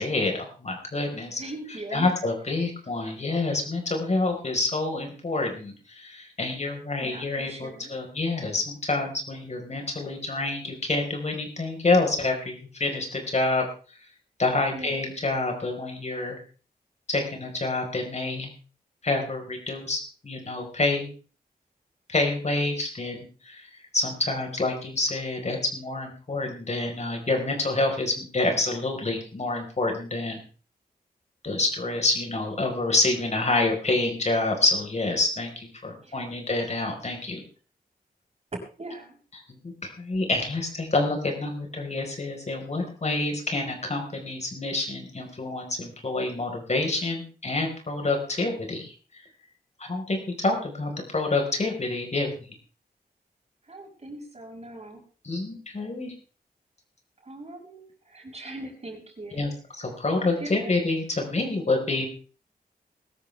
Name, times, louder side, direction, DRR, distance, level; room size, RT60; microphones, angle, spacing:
voice 1, 0.0-1.4 1.9-13.7 14.4-16.4 17.1-18.5 19.0-21.1 22.1-23.7 23.9-30.4 31.4-37.4 39.5-48.9 49.8-52.3 55.2-56.1 59.3-62.1, left 2 dB, 45° left, 3 dB, 4.8 m, -27 dB
voice 2, 1.4-2.2 7.0-7.9 14.7-15.1 36.0-36.4 38.8-39.2 53.6-55.0 57.2-59.5 60.2-60.8, right 1 dB, 40° right, 1 dB, 5.9 m, -41 dB
21.0 x 13.0 x 3.5 m, 0.37 s
wide cardioid pair, 85°, 16 cm